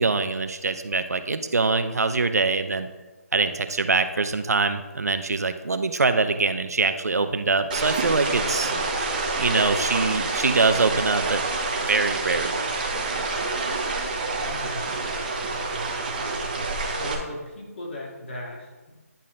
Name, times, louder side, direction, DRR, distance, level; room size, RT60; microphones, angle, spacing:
voice 1, 0.0-2.9 3.3-8.7 9.4-11.4 11.9-12.5, right 3 dB, 85° right, 10 dB, 0.7 m, -23 dB
sound 1, 7.7-17.1, right 3 dB, 30° right, 1.1 m, -27 dB
voice 2, 14.4-14.9 17.0-18.9, left 1 dB, 45° left, -3 dB, 2.3 m, -37 dB
10.0 x 4.1 x 3.7 m, 1.2 s
figure-of-eight pair, 165°, 8 cm